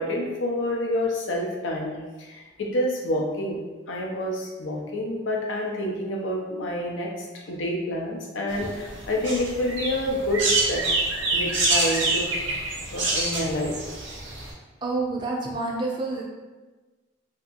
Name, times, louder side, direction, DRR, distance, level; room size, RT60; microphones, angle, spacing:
voice 1, 0.0-3.6 3.9-7.1 7.5-10.8 11.3-12.2 12.9-13.8, left 1 dB, 90° left, -1 dB, 0.5 m, -28 dB
sound 1, 8.5-14.5, right 2 dB, 85° right, 0.7 m, -26 dB
voice 2, 14.8-16.2, right 2 dB, 25° right, -2 dB, 0.4 m, -28 dB
2.7 x 2.3 x 2.5 m, 1.2 s
head